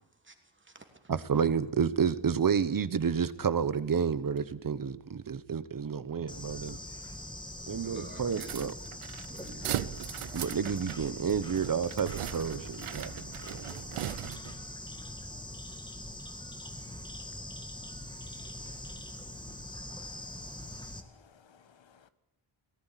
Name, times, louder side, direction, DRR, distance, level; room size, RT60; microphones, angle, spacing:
voice 1, 0.0-1.4 7.7-8.8 9.1-9.9, right 2 dB, 25° right, 2.9 m, -49 dB
voice 2, 1.1-6.8 7.7-8.7 10.3-13.7, right 6 dB, 45° right, 1.0 m, -30 dB
Bird / Insect, 6.3-21.0, left 1 dB, 10° left, 1.7 m, -43 dB
sound 1, 8.3-14.7, right 12 dB, 85° right, 0.8 m, -39 dB
voice 3, 19.9-22.1, left 7 dB, 65° left, 1.4 m, -61 dB
18.5 x 14.5 x 9.9 m
wide cardioid pair, 120°, 49 cm